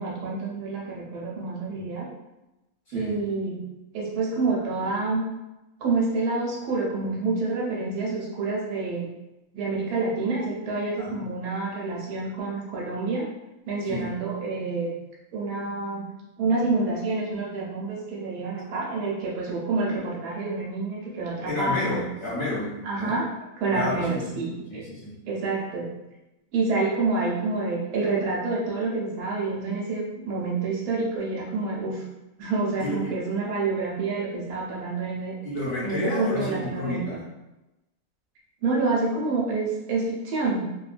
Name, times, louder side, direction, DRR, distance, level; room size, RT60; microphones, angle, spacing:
voice 1, 0.0-2.1 2.9-3.6 3.9-5.2 5.8-9.1 9.5-13.2 13.7-14.9 15.3-16.1 16.4-22.0 22.8-23.3 23.6-24.8 25.3-25.9 26.5-32.0 32.4-35.3 35.8-37.2 38.6-40.6, right 3 dB, 80° right, -4 dB, 1.1 m, -28 dB
voice 2, 2.9-3.2 11.0-11.2 13.8-14.1 21.5-23.2 23.7-24.4 24.7-25.1 32.8-33.1 35.4-37.2, left 2 dB, 65° left, -8 dB, 1.1 m, -30 dB
2.9 x 2.2 x 2.4 m, 0.99 s
omnidirectional pair, 1.6 m